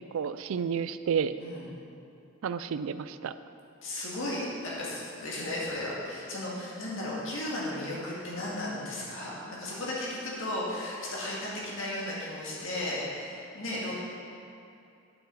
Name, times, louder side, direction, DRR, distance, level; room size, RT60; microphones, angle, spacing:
voice 1, 0.1-1.3 2.4-3.3, right 7 dB, 70° right, 13 dB, 0.3 m, -30 dB
voice 2, 1.4-1.7 3.8-9.3 9.6-13.9, left 1 dB, 65° left, -6 dB, 1.9 m, -35 dB
8.9 x 8.1 x 4.0 m, 2.6 s
head